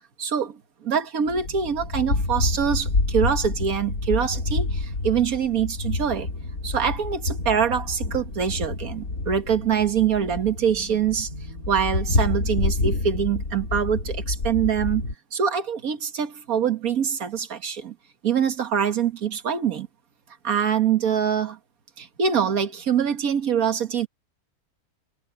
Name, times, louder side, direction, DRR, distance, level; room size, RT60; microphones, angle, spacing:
voice 1, 0.2-6.3 6.6-11.3 11.7-15.0 15.3-18.0 18.2-19.9 20.4-21.6 22.0-24.1, right 7 dB, 70° right, 2.0 m, -24 dB
sound 1, 1.3-15.1, left 2 dB, 70° left, 3.3 m, -28 dB
omnidirectional pair, 1.6 m